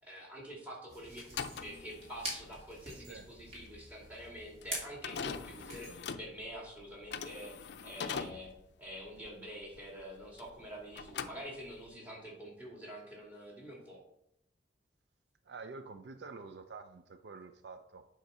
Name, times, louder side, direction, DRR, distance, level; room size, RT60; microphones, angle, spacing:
voice 1, 0.0-8.5 8.8-14.0, equal, 10° right, 2.2 m, -47 dB
sound 1, 0.9-5.9, right 1 dB, 35° right, 2.8 m, -46 dB
sound 2, 1.2-10.7 10.9-11.9, left 6 dB, 65° left, 0.4 m, -43 dB
voice 2, 3.0-3.3 15.4-18.1, right 4 dB, 60° right, 0.4 m, -48 dB
8.0 x 3.8 x 5.4 m
head